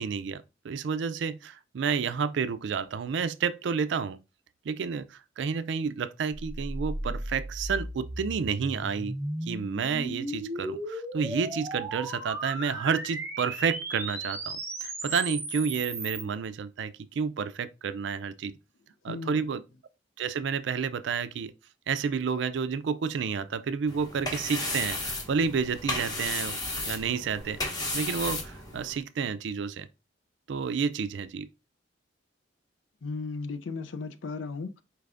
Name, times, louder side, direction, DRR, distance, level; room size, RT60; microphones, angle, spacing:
voice 1, 0.0-4.2 4.6-9.2 9.4-18.5 19.0-19.6 20.2-21.5 21.9-26.6 26.9-27.6 27.9-29.9 30.5-31.5, right 6 dB, 70° right, 0.4 m, -30 dB
sound 1, 6.3-16.2, right 1 dB, 15° right, 0.8 m, -36 dB
voice 2, 19.1-19.5 33.0-34.8, left 4 dB, 90° left, 0.5 m, -36 dB
sound 2, 23.9-29.0, left 2 dB, 20° left, 0.9 m, -34 dB
4.5 x 3.4 x 2.4 m
head